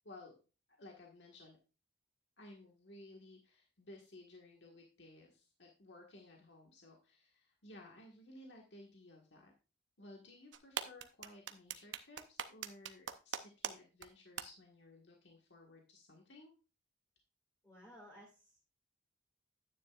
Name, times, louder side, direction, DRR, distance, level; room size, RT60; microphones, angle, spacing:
voice 1, 0.0-0.4 0.7-1.6 2.4-9.5 10.0-16.5, left 2 dB, 70° left, 1 dB, 1.6 m, -57 dB
sound 1, 10.5-13.7 14.0-14.1 14.4-14.5, right 8 dB, 80° right, 0.7 m, -40 dB
voice 2, 17.6-18.6, equal, 15° left, -3 dB, 2.2 m, -57 dB
10.0 x 9.4 x 2.4 m, 0.32 s
head